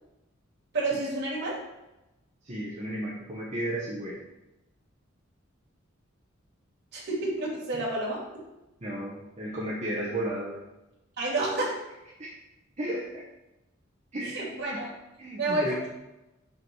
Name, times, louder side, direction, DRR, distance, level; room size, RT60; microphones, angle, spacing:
voice 1, 0.7-1.6 6.9-8.2 11.2-11.7 14.3-14.9 15.4-15.9, right 2 dB, 55° right, -5 dB, 2.6 m, -29 dB
voice 2, 2.4-4.2 8.8-10.6 12.2-12.3 12.8-13.2 14.1-14.4 14.6-14.8 15.2-15.8, right 1 dB, 35° right, -6 dB, 1.2 m, -33 dB
5.5 x 4.1 x 6.0 m, 0.98 s
head